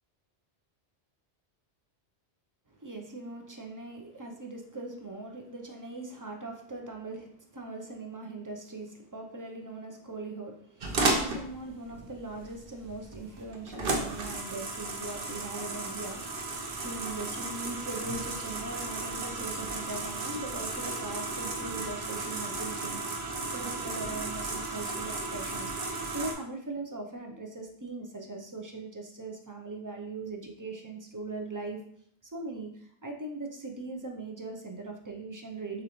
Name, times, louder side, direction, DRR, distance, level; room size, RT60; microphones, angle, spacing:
voice 1, 2.7-16.5 16.8-23.0 23.5-31.8 32.3-35.8, right 2 dB, 25° right, 2 dB, 0.5 m, -40 dB
sound 1, 10.8-26.3, right 3 dB, 60° right, 0.9 m, -34 dB
6.5 x 2.5 x 3.0 m, 0.65 s
omnidirectional pair, 1.1 m